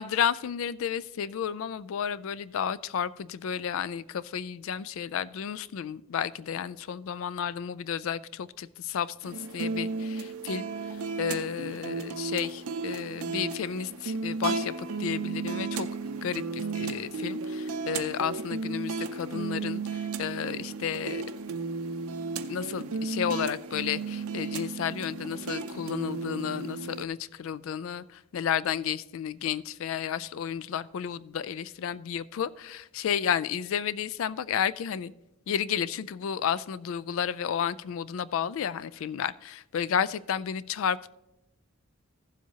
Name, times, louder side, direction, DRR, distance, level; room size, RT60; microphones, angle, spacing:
voice 1, 0.0-10.6 11.2-15.9 16.2-21.2 22.5-28.0 28.3-35.1 35.5-41.1, left 8 dB, 65° left, 18 dB, 0.3 m, -32 dB
sound 1, 9.2-27.0, right 4 dB, 85° right, 0.5 m, -34 dB
15.5 x 7.4 x 2.8 m, 0.93 s
head